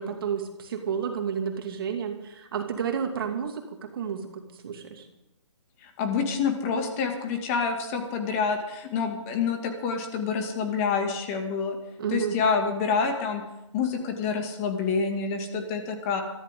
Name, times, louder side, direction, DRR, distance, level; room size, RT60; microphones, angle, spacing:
voice 1, 0.0-5.0 12.0-12.4, right 7 dB, 45° right, 4 dB, 2.5 m, -31 dB
voice 2, 5.8-11.8 12.1-13.4 13.7-16.2, left 5 dB, 25° left, 4 dB, 2.4 m, -27 dB
23.0 x 14.0 x 3.9 m, 0.88 s
figure-of-eight pair, 145°, 16 cm